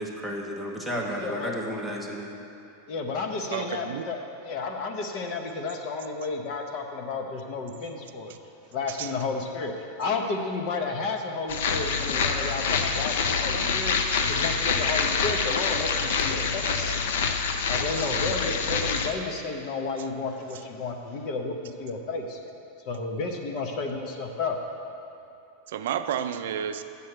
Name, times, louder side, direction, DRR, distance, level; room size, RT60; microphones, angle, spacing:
voice 1, 0.0-2.3, equal, ahead, -1 dB, 0.9 m, -32 dB
voice 2, 1.2-1.5 2.9-8.3 8.7-9.7 10.0-14.0 14.3-17.1 17.7-22.4 22.9-24.6, left 3 dB, 35° left, 3 dB, 0.9 m, -32 dB
voice 3, 3.5-4.1 8.9-9.1 16.2-16.3 17.9-18.4 23.5-23.9 25.7-26.8, right 9 dB, 70° right, 10 dB, 0.4 m, -32 dB
sound 1, 11.5-19.1, left 5 dB, 75° left, 0.7 m, -26 dB
7.0 x 6.4 x 7.7 m, 2.7 s
supercardioid pair, 170°, 0 cm